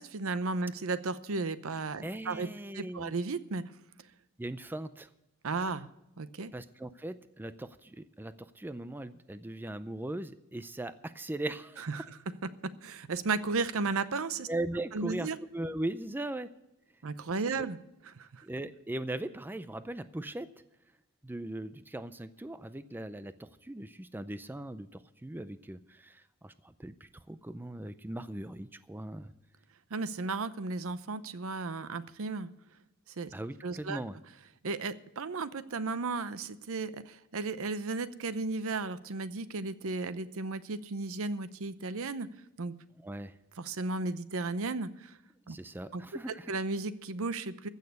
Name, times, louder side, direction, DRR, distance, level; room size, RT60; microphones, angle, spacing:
voice 1, 0.0-2.5 2.7-3.6 5.4-5.9 6.2-6.5 11.8-14.5 14.9-15.4 17.0-17.8 18.0-18.4 29.9-32.5 33.2-33.3 33.6-34.0 34.6-42.3 42.6-42.7 43.6-45.1 45.5-45.6 45.9-46.0 46.5-47.7, right 3 dB, 65° right, 14 dB, 0.7 m, -34 dB
voice 2, 2.0-3.1 4.4-5.1 6.5-11.8 14.5-16.5 17.5-17.7 18.4-20.5 21.2-29.3 33.3-34.1 43.0-43.3 45.5-46.5, right 1 dB, 10° right, 12 dB, 0.4 m, -39 dB
15.0 x 6.5 x 9.5 m, 0.90 s
head